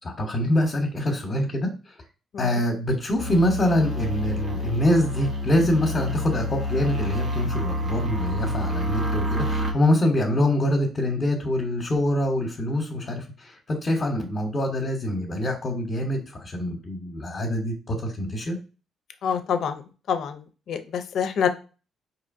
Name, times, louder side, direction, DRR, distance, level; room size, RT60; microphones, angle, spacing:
voice 1, 0.0-1.9 2.4-18.6, left 1 dB, 35° left, 0 dB, 0.9 m, -25 dB
sound 1, 3.2-9.7, left 1 dB, 50° right, 0.9 m, -28 dB
voice 2, 19.2-19.8 20.1-20.4 20.7-21.5, left 7 dB, 65° left, 8 dB, 0.5 m, -26 dB
4.3 x 2.8 x 2.5 m, 0.34 s
cardioid pair, 90°, 0 cm